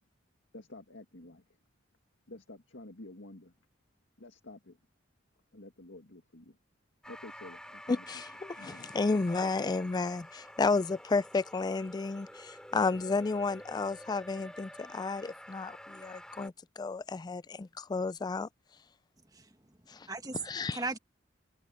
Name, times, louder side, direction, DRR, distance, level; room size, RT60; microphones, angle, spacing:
voice 1, 0.5-1.4 2.3-3.5 4.2-4.8 5.5-6.6 7.1-8.1 8.6-8.9, left 2 dB, 75° left, 2.1 m, -50 dB
sound 1, 7.0-16.5, equal, 5° left, 6.0 m, -49 dB
voice 2, 7.9-18.5 19.9-20.1 20.5-20.8, left 3 dB, 20° left, 0.3 m, -32 dB
voice 3, 19.3-20.4 20.7-21.0, right 3 dB, 20° right, 1.4 m, -39 dB
head